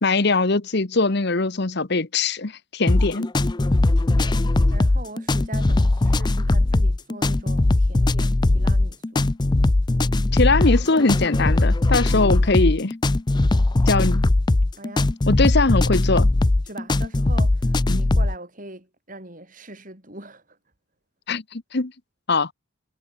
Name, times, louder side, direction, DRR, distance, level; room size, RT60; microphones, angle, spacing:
voice 1, 0.0-3.3 10.3-12.9 13.9-14.3 15.3-16.3 17.9-18.0 21.3-21.9 22.3-22.5, left 3 dB, 50° left, 1.1 m, -21 dB
sound 1, 2.9-18.3, left 2 dB, 20° left, 0.4 m, -20 dB
voice 2, 4.7-9.3 14.8-15.8 16.7-20.6, right 2 dB, 40° right, 7.4 m, -41 dB
head